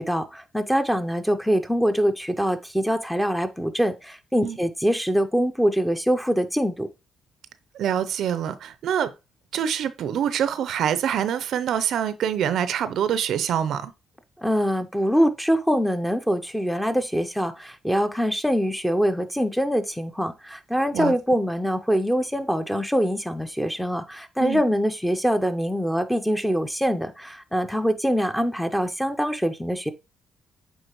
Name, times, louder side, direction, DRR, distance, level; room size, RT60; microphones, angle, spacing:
voice 1, 0.0-6.9 14.4-29.9, equal, ahead, 0.7 m, -24 dB
voice 2, 7.7-9.1 9.5-13.9 20.9-21.1 24.4-24.6, right 9 dB, 75° right, 0.5 m, -25 dB
7.9 x 4.1 x 3.0 m
cardioid pair, 90°, 0 cm